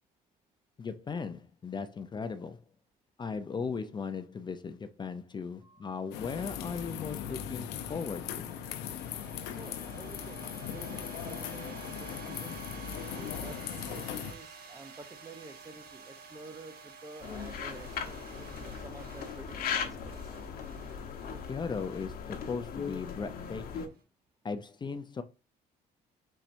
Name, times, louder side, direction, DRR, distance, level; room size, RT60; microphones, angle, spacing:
voice 1, 0.8-2.6 3.2-8.5 21.5-23.9 24.4-25.2, left 5 dB, 25° left, 0.5 m, -37 dB
sound 1, 5.6-23.9, right 5 dB, 65° right, 1.4 m, -51 dB
sound 2, 6.1-14.3, left 9 dB, 85° left, 0.6 m, -39 dB
voice 2, 9.5-12.6 13.1-20.3, right 3 dB, 20° right, 0.6 m, -50 dB
sound 3, 17.2-23.9, left 6 dB, 60° left, 1.0 m, -38 dB
4.6 x 4.3 x 2.6 m
cardioid pair, 110°, 17 cm